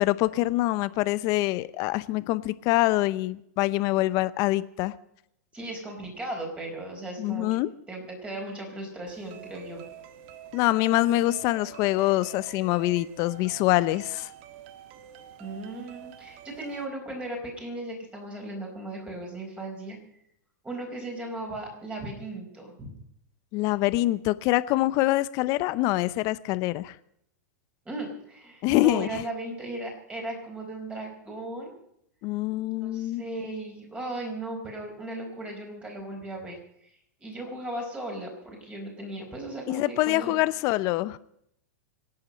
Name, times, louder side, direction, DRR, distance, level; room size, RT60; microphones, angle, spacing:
voice 1, 0.0-4.9 7.2-7.7 10.5-14.3 23.5-27.0 28.6-29.2 32.2-33.2 39.7-41.2, left 17 dB, 40° left, 16 dB, 0.7 m, -25 dB
voice 2, 5.5-7.5 7.9-9.8 15.4-20.0 20.6-22.9 27.8-31.8 32.8-36.6 37.2-40.3, right 1 dB, 10° right, 1 dB, 4.6 m, -37 dB
sound 1, 9.1-16.9, right 10 dB, 45° right, 1.3 m, -47 dB
26.0 x 8.8 x 5.3 m, 0.73 s
supercardioid pair, 145°, 9 cm